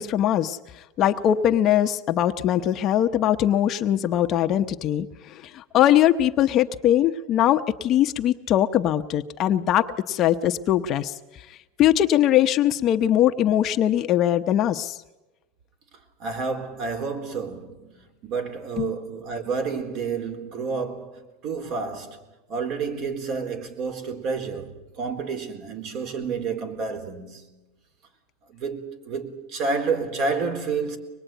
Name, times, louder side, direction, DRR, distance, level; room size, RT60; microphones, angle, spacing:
voice 1, 0.0-11.2 11.8-15.0 18.8-18.9, left 11 dB, 35° left, 0.9 m, -21 dB
voice 2, 16.2-22.2 22.5-27.6 28.5-31.0, right 4 dB, 45° right, 4.0 m, -30 dB
24.5 x 20.5 x 9.2 m
supercardioid pair, 150°, 0 cm